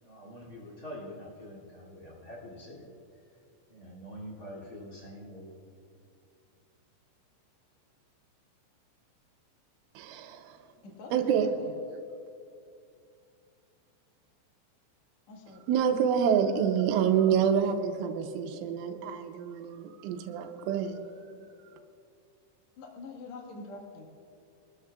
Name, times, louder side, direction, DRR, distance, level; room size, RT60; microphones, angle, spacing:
voice 1, 0.0-2.9 3.7-5.5, equal, 25° left, -5 dB, 2.1 m, -45 dB
voice 2, 10.0-10.6 11.1-11.5 15.7-21.0, right 8 dB, 85° right, 5 dB, 3.2 m, -27 dB
voice 3, 10.8-11.7 15.3-15.6 22.8-24.1, left 3 dB, 60° left, 0 dB, 1.9 m, -45 dB
25.0 x 13.0 x 2.4 m, 2.4 s
omnidirectional pair, 5.7 m